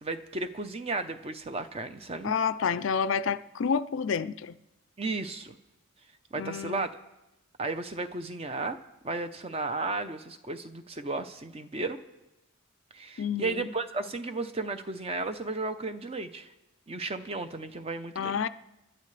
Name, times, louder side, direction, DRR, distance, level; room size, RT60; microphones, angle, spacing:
voice 1, 0.0-2.3 5.0-5.5 6.3-6.9 7.6-8.8 9.0-12.0 12.9-16.5 16.9-18.4, right 3 dB, 30° right, 0.6 m, -34 dB
voice 2, 2.2-4.6 6.3-6.9 13.2-13.7 18.2-18.5, left 6 dB, 60° left, 0.4 m, -29 dB
29.0 x 11.5 x 3.3 m
head